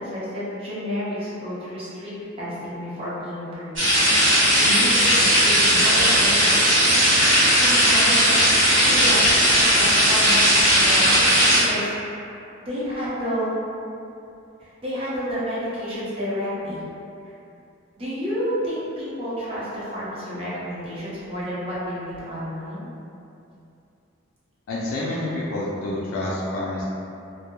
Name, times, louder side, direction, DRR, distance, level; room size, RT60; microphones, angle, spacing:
voice 1, 0.0-3.8 4.1-7.0 7.5-8.6 8.8-11.4 11.6-11.9 12.6-13.5 14.6-16.9 17.3-17.4 18.0-22.9, equal, 30° right, -10 dB, 0.7 m, -30 dB
sound 1, 3.8-11.6, equal, 75° right, 1.0 m, -17 dB
voice 2, 24.7-26.8, left 1 dB, 90° left, -6 dB, 0.3 m, -28 dB
2.2 x 2.0 x 2.9 m, 2.7 s
head